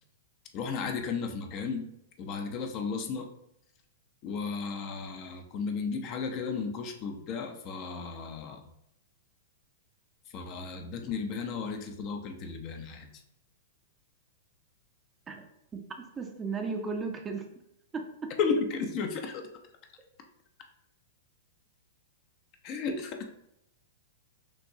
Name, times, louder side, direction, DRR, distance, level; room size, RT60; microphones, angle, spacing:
voice 1, 0.5-1.9 2.2-3.3 4.2-8.6 10.3-13.1 18.4-19.5 22.6-23.2, left 5 dB, 40° left, 4 dB, 0.6 m, -34 dB
voice 2, 15.7-17.5 17.9-18.3, right 4 dB, 20° right, 4 dB, 0.6 m, -35 dB
6.0 x 2.6 x 2.7 m, 0.81 s
figure-of-eight pair, 100°, 0 cm